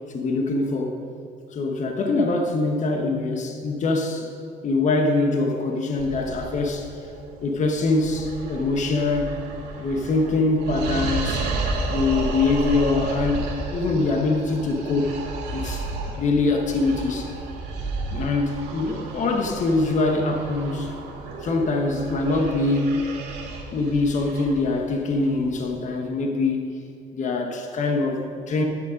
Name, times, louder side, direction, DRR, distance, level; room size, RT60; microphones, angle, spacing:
voice 1, 0.1-1.0 1.5-4.3 4.6-6.9 7.4-9.4 9.8-11.5 11.9-15.2 15.5-17.3 18.1-20.9 21.4-23.1 23.7-26.7 27.1-28.6, left 3 dB, 45° left, 3 dB, 1.2 m, -23 dB
sound 1, 6.0-25.6, right 3 dB, 90° right, 2.1 m, -32 dB
10.5 x 8.7 x 5.2 m, 2.4 s
cardioid pair, 110°, 17 cm